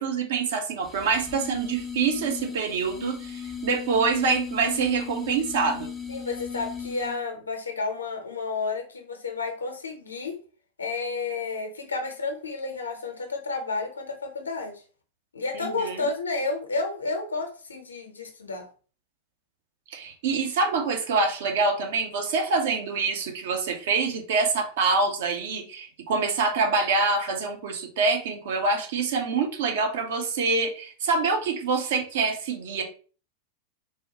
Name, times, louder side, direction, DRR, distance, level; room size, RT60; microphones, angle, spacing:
voice 1, 0.0-5.9 15.5-16.0 19.9-32.8, right 4 dB, 55° right, 3 dB, 0.6 m, -26 dB
sound 1, 0.8-7.3, left 7 dB, 10° left, 0.5 m, -37 dB
voice 2, 6.1-10.4 10.8-14.8 15.3-18.6, left 3 dB, 75° left, 4 dB, 0.6 m, -31 dB
3.4 x 2.2 x 2.8 m, 0.39 s
figure-of-eight pair, 90°, 0 cm